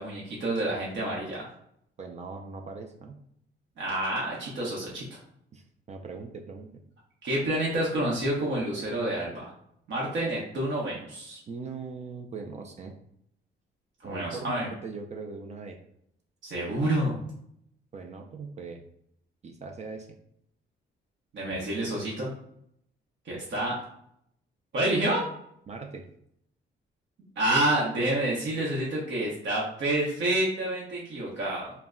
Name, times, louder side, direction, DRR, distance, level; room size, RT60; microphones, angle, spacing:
voice 1, 0.0-1.5 3.8-5.2 7.2-9.5 9.9-11.4 14.0-14.7 16.4-17.2 21.3-22.3 23.2-23.8 24.7-25.3 27.4-31.7, right 1 dB, 65° right, -4 dB, 0.8 m, -28 dB
voice 2, 2.0-3.2 5.5-6.8 11.5-12.9 14.0-15.8 17.9-18.8 19.4-20.1 25.7-26.0, right 4 dB, 35° right, 3 dB, 0.4 m, -40 dB
2.1 x 2.1 x 3.6 m, 0.72 s
cardioid pair, 90°, 20 cm